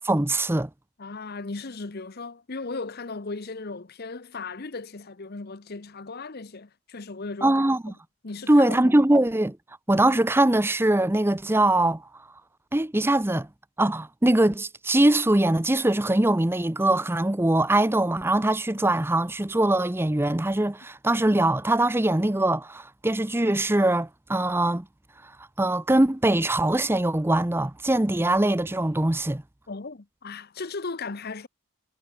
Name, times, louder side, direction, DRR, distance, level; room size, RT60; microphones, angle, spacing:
voice 1, 0.0-0.7 7.4-7.9 8.5-9.6 9.9-12.0 12.7-13.5 13.8-24.8 25.2-25.3 25.6-29.4, right 1 dB, 10° right, 0.6 m, -22 dB
voice 2, 1.0-7.7 8.2-9.0 29.7-31.5, left 3 dB, 45° left, 0.8 m, -36 dB
head